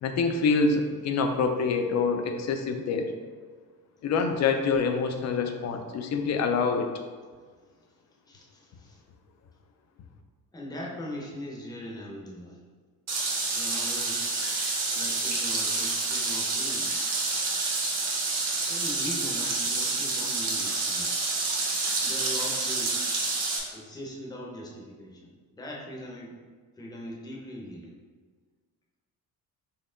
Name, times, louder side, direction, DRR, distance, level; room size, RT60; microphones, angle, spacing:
voice 1, 0.0-3.1 4.0-6.9, left 4 dB, 45° left, 5 dB, 0.5 m, -26 dB
voice 2, 8.3-9.0 10.5-12.6 13.5-14.4 14.9-17.0 18.7-21.2 22.0-22.9 23.7-26.3 26.8-27.9, left 1 dB, 10° left, -2 dB, 0.7 m, -40 dB
sound 1, 13.1-23.6, right 3 dB, 45° right, 0.9 m, -28 dB
4.3 x 2.9 x 3.7 m, 1.5 s
cardioid pair, 145°, 37 cm